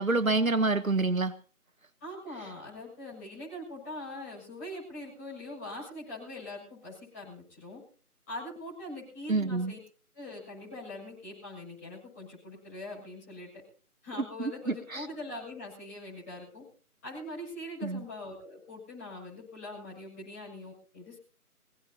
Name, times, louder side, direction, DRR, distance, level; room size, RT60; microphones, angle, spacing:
voice 1, 0.0-1.3 9.3-9.7 14.4-15.1 17.8-18.0, right 3 dB, 60° right, 10 dB, 1.3 m, -27 dB
voice 2, 2.0-7.8 8.3-9.8 10.1-13.5 14.0-16.6 17.0-21.2, left 1 dB, 10° left, -8 dB, 6.9 m, -42 dB
25.0 x 17.5 x 2.9 m, 0.42 s
figure-of-eight pair, 170°, 46 cm